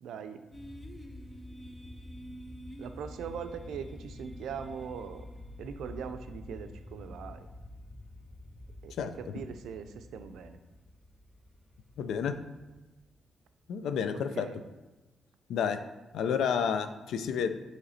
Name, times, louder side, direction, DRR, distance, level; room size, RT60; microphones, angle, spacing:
voice 1, 0.0-0.4 2.8-5.3 5.6-7.5 8.8-10.6 14.1-14.6, right 7 dB, 80° right, 9 dB, 0.4 m, -41 dB
sound 1, 0.5-13.4, left 1 dB, 10° left, 0.3 m, -47 dB
voice 2, 12.0-12.3 13.7-14.5 15.5-15.8 16.1-17.5, left 7 dB, 80° left, 9 dB, 0.4 m, -30 dB
7.7 x 3.2 x 4.1 m, 1.1 s
wide cardioid pair, 175°, 0 cm